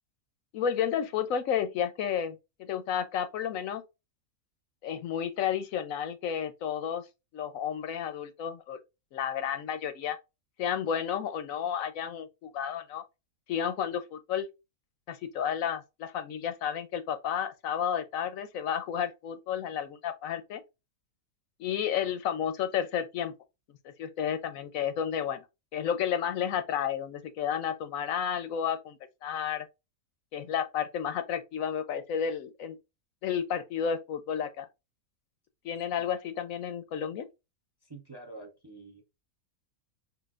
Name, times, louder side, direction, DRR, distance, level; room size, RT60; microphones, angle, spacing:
voice 1, 0.5-3.8 4.8-7.1 7.3-8.8 9.1-10.2 10.6-13.0 13.5-14.5 15.1-20.6 21.6-23.3 23.8-25.4 25.7-29.7 30.3-32.8 33.2-34.7 35.6-37.3, left 8 dB, 70° left, 1.0 m, -32 dB
voice 2, 37.8-39.0, right 2 dB, 25° right, 0.5 m, -47 dB
6.2 x 2.6 x 2.4 m
omnidirectional pair, 1.5 m